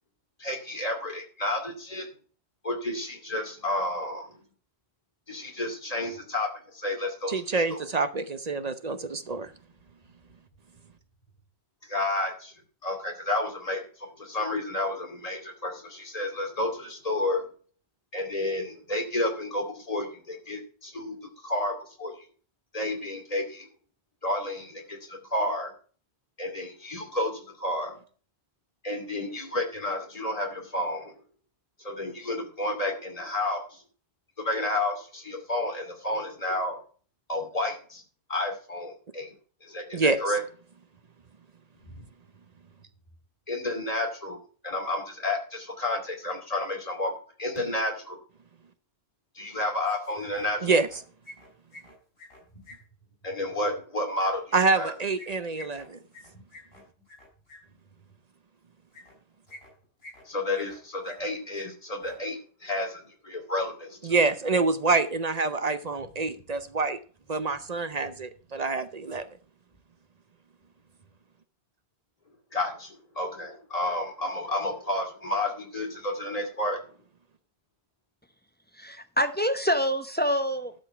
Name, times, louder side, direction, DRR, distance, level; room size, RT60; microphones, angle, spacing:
voice 1, 0.4-2.1 2.6-4.3 5.3-7.3 7.7-7.8 11.9-12.5 12.8-17.5 18.1-21.2 21.4-22.2 22.7-23.7 24.2-25.7 26.4-27.9 28.8-31.1 31.8-33.8 34.4-36.8 37.3-38.0 38.3-39.3 39.6-40.4 42.0-42.1 43.5-44.4 44.6-47.1 47.4-48.2 49.4-50.7 53.2-54.9 60.3-64.2 72.5-76.8, left 1 dB, 35° left, 2 dB, 2.6 m, -31 dB
voice 2, 7.3-9.5 39.9-40.2 50.6-50.9 54.5-56.0 64.0-67.0 67.3-69.2, right 3 dB, 45° right, 11 dB, 0.7 m, -26 dB
sound 1, 49.8-50.5 50.7-52.8 54.2-57.6 58.9-59.1 59.5-60.2 60.5-61.3 61.5-61.7 61.9-62.2, left 1 dB, 65° left, 5.7 m, -48 dB
voice 3, 78.7-80.7, equal, 10° left, 8 dB, 0.7 m, -26 dB
12.0 x 5.4 x 5.7 m, 0.41 s
omnidirectional pair, 1.1 m